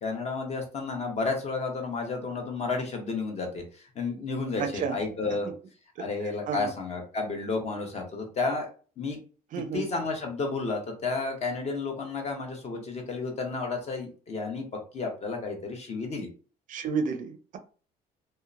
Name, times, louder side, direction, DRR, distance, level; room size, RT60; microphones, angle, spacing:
voice 1, 0.0-5.5 6.0-8.7 9.0-9.2 9.7-14.6 14.9-16.3, left 3 dB, 40° left, 2 dB, 0.8 m, -32 dB
voice 2, 4.6-5.0 6.0-6.1 6.5-6.7 9.5-9.9 16.7-17.6, right 6 dB, 50° right, 7 dB, 0.4 m, -31 dB
2.8 x 2.0 x 2.4 m, 0.38 s
cardioid pair, 110°, 17 cm